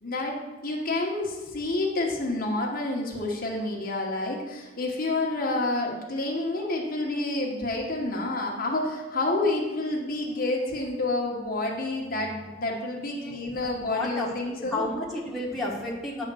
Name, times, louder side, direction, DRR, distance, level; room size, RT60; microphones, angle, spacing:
voice 1, 0.0-14.8, left 2 dB, 45° left, -1 dB, 1.1 m, -29 dB
voice 2, 13.1-16.2, left 2 dB, ahead, -6 dB, 1.4 m, -32 dB
9.5 x 3.6 x 6.8 m, 1.2 s
head